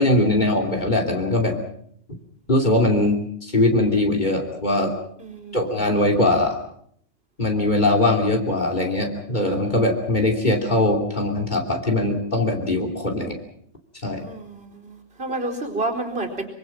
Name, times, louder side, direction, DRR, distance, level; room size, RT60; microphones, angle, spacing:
voice 1, 0.0-1.6 2.5-4.9 5.5-6.6 7.4-13.4 14.0-14.2, left 2 dB, 35° left, 2 dB, 3.2 m, -21 dB
voice 2, 5.2-5.6 14.2-16.5, right 2 dB, 45° right, -1 dB, 4.4 m, -30 dB
24.5 x 24.5 x 6.0 m, 0.67 s
omnidirectional pair, 1.4 m